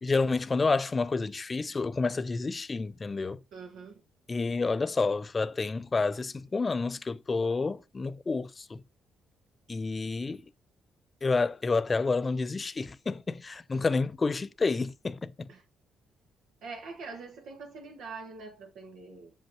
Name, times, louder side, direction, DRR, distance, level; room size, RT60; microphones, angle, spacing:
voice 1, 0.0-3.4 4.3-8.8 9.7-10.4 11.2-15.5, left 4 dB, 30° left, 0.5 m, -29 dB
voice 2, 3.5-4.0 15.5-15.6 16.6-19.3, right 4 dB, 80° right, 1.4 m, -44 dB
7.4 x 5.2 x 2.8 m
cardioid pair, 90°, 0 cm